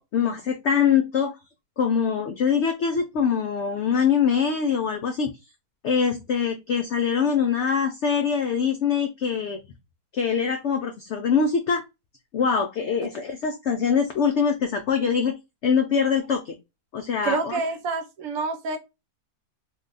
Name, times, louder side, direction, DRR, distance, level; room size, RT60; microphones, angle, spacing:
voice 1, 0.0-1.3 1.8-5.3 5.8-9.6 10.1-11.8 12.3-15.3 15.6-16.5 16.9-17.6, left 6 dB, 70° left, 0.6 m, -23 dB
voice 2, 17.2-18.8, right 3 dB, 75° right, 1.2 m, -27 dB
2.7 x 2.2 x 3.7 m
omnidirectional pair, 1.6 m